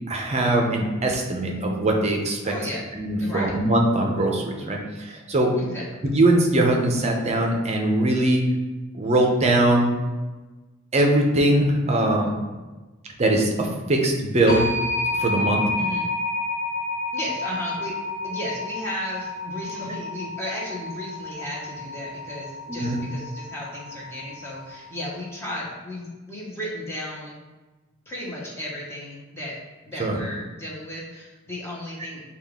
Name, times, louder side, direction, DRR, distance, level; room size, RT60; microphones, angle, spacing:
voice 1, 0.1-2.5 2.9-5.5 6.0-8.4 8.9-9.9 10.9-12.3 13.2-14.7 15.1-15.7 22.7-23.0 30.0-30.2 32.0-32.1, right 1 dB, 30° right, 1 dB, 0.6 m, -21 dB
voice 2, 2.4-2.8 3.2-3.5 5.6-5.8 15.8-16.1 17.1-18.0 18.2-27.4 28.1-29.6 29.8-32.2, left 1 dB, 10° left, -5 dB, 0.9 m, -34 dB
sound 1, 14.5-25.1, left 2 dB, 60° left, 0.9 m, -30 dB
5.6 x 2.4 x 3.5 m, 1.2 s
head